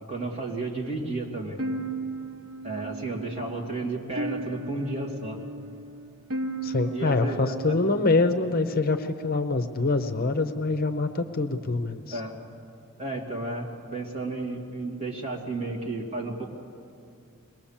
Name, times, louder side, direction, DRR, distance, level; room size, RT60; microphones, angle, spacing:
voice 1, 0.1-1.6 2.6-5.4 6.9-7.8 12.1-12.3 13.0-16.4, right 2 dB, 30° right, -1 dB, 2.6 m, -32 dB
sound 1, 1.6-8.7, right 2 dB, 75° right, 1.1 m, -36 dB
voice 2, 6.6-12.2, left 3 dB, 45° left, 9 dB, 0.7 m, -25 dB
22.5 x 20.0 x 7.3 m, 2.4 s
head